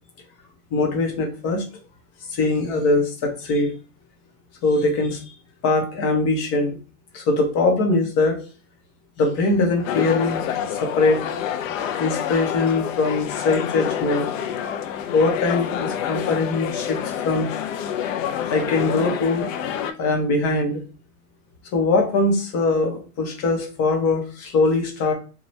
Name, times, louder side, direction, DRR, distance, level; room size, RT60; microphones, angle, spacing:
voice 1, 0.7-1.6 2.3-3.8 4.6-5.3 5.6-6.8 7.1-8.4 9.2-11.2 12.0-14.3 15.1-17.5 18.5-19.5 20.0-20.8 21.7-25.1, left 3 dB, 35° left, 3 dB, 0.9 m, -22 dB
sound 1, 9.8-19.9, left 9 dB, 60° left, 0.5 m, -27 dB
2.7 x 2.4 x 3.0 m, 0.35 s
hypercardioid pair, 130°, 44 cm